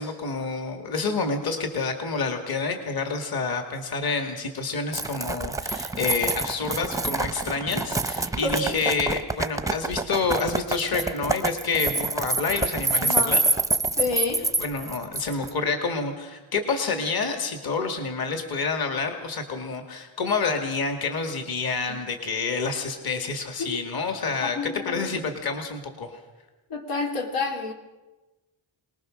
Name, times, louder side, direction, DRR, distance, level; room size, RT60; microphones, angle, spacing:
voice 1, 0.0-13.4 14.6-24.6 24.9-26.2, left 4 dB, 45° left, 5 dB, 2.3 m, -28 dB
sound 1, 4.9-15.5, right 3 dB, 5° right, 0.6 m, -26 dB
voice 2, 8.4-8.7 13.0-13.4 14.0-14.5 21.9-22.0 23.6-23.7 24.4-25.2 26.7-27.7, left 3 dB, 85° left, 2 dB, 3.5 m, -29 dB
25.0 x 20.0 x 6.5 m, 1.1 s
wide cardioid pair, 150°, 49 cm